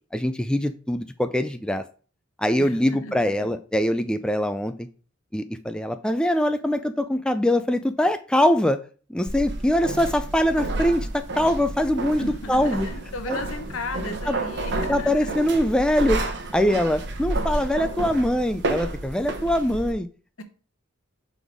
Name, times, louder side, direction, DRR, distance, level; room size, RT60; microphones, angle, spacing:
voice 1, 0.1-1.8 2.4-4.9 5.3-8.8 9.1-12.9 13.3-13.4 14.3-14.4 14.9-16.2 16.5-20.1, left 1 dB, 5° left, 9 dB, 0.3 m, -23 dB
voice 2, 2.6-3.5 12.2-15.5 20.4-20.5, left 2 dB, 75° left, 7 dB, 1.0 m, -36 dB
sound 1, 9.3-19.9, right 2 dB, 60° right, 0.9 m, -30 dB
5.3 x 4.0 x 4.7 m, 0.39 s
head